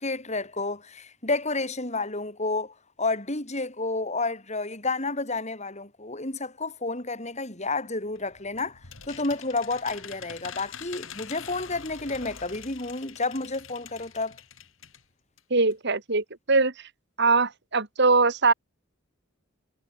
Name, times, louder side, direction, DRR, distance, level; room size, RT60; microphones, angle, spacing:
voice 1, 0.0-8.8 9.1-14.4, left 3 dB, 35° left, 5.6 m, -30 dB
sound 1, 8.1-15.0 15.4-15.5 15.7-15.8, left 7 dB, 70° left, 3.7 m, -44 dB
voice 2, 15.5-16.9 17.2-18.5, right 3 dB, 55° right, 2.4 m, -22 dB
head